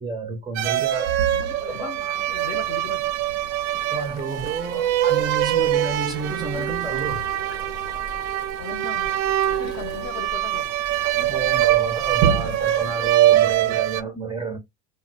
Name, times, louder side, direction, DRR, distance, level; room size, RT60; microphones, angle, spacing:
voice 1, 0.0-1.3 1.7-2.2 3.9-7.2 7.5-7.6 11.0-14.6, right 4 dB, 15° right, 0.4 m, -30 dB
sound 1, 0.6-14.0, right 12 dB, 90° right, 0.5 m, -23 dB
voice 2, 1.3-3.1 8.6-9.2 9.5-10.7, left 6 dB, 45° left, 0.6 m, -37 dB
Boiling, 2.1-13.4, left 4 dB, 85° left, 0.8 m, -42 dB
2.1 x 2.1 x 3.8 m
cardioid pair, 135°, 34 cm